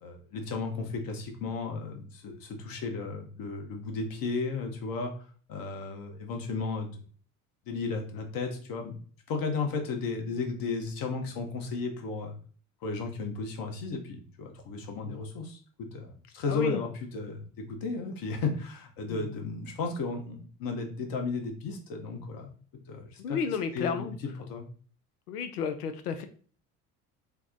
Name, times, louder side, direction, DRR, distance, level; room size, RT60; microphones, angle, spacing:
voice 1, 0.0-7.0 7.7-8.9 9.3-12.3 12.8-22.5 22.9-23.4 23.7-24.7, left 4 dB, 50° left, 4 dB, 1.0 m, -34 dB
voice 2, 16.5-16.8 19.1-19.3 23.2-24.1 25.3-26.2, left 6 dB, 85° left, 8 dB, 0.5 m, -32 dB
3.4 x 2.1 x 3.6 m, 0.43 s
hypercardioid pair, 65°, 45 cm